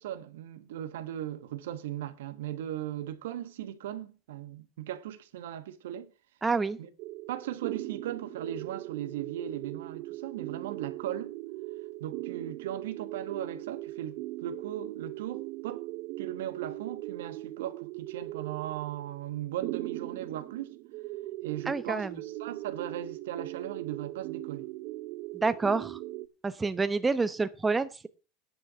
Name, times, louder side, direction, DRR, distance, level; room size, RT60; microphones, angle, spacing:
voice 1, 0.0-6.1 6.8-6.9 7.3-11.3 12.0-15.9 16.2-20.8 21.4-24.7, right 11 dB, 80° right, 1.3 m, -38 dB
voice 2, 6.4-6.8 21.7-22.1 25.3-26.0 26.4-28.1, right 4 dB, 20° right, 1.0 m, -28 dB
sound 1, 7.0-26.3, right 18 dB, 60° right, 0.7 m, -40 dB
10.0 x 6.1 x 7.3 m
hypercardioid pair, 90°, 0 cm